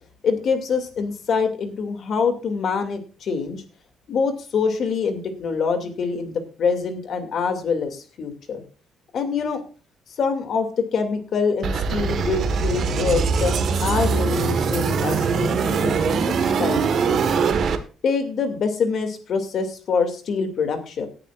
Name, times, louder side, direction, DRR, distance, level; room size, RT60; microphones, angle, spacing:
voice 1, 0.2-3.6 4.1-8.6 9.1-9.6 10.2-17.5 18.0-21.1, left 5 dB, 50° left, 6 dB, 2.5 m, -25 dB
sound 1, 11.6-17.8, right 5 dB, 50° right, 1.6 m, -22 dB
18.0 x 10.5 x 2.5 m, 0.37 s
cardioid pair, 160°, 0 cm